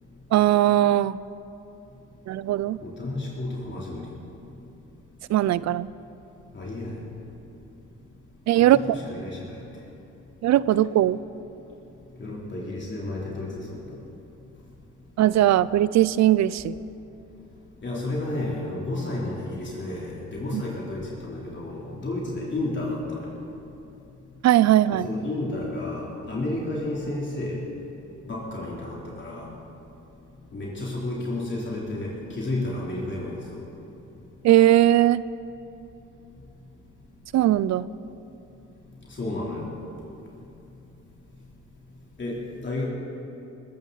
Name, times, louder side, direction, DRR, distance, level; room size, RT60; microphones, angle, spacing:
voice 1, 0.3-1.2 2.3-2.8 5.3-5.9 8.5-8.8 10.4-11.2 15.2-16.7 20.5-20.6 24.4-25.1 34.4-35.2 37.3-37.9, right 13 dB, 65° right, 18 dB, 0.5 m, -19 dB
voice 2, 2.8-4.1 6.5-7.0 8.6-9.6 12.2-14.0 17.8-23.3 24.9-27.6 28.2-29.5 30.5-33.6 39.1-39.7 42.2-42.9, left 2 dB, 40° left, -5 dB, 3.4 m, -32 dB
21.0 x 14.5 x 4.0 m, 2.9 s
cardioid pair, 90°, 30 cm